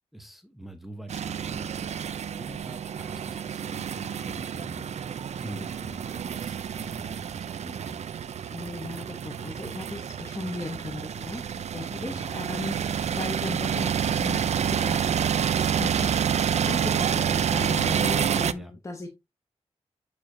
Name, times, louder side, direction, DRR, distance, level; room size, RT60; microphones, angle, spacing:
voice 1, 0.1-8.1 11.9-12.4 17.8-18.1 18.6-18.7, right 1 dB, ahead, 1.0 m, -44 dB
sound 1, 1.1-18.5, right 8 dB, 80° right, 0.5 m, -28 dB
voice 2, 8.5-19.1, left 2 dB, 25° left, 1.0 m, -37 dB
8.5 x 4.8 x 2.7 m
wide cardioid pair, 115°, 11 cm